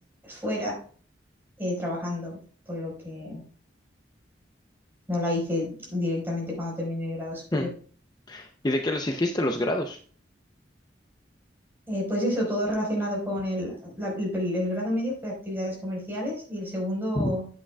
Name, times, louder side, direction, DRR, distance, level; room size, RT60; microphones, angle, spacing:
voice 1, 0.2-0.8 1.6-2.4 2.7-3.4 5.1-7.7 11.9-17.5, left 1 dB, 10° right, -3 dB, 4.4 m, -29 dB
voice 2, 8.3-10.0 17.2-17.3, left 1 dB, 20° left, 4 dB, 0.6 m, -27 dB
10.0 x 8.6 x 2.3 m, 0.43 s
head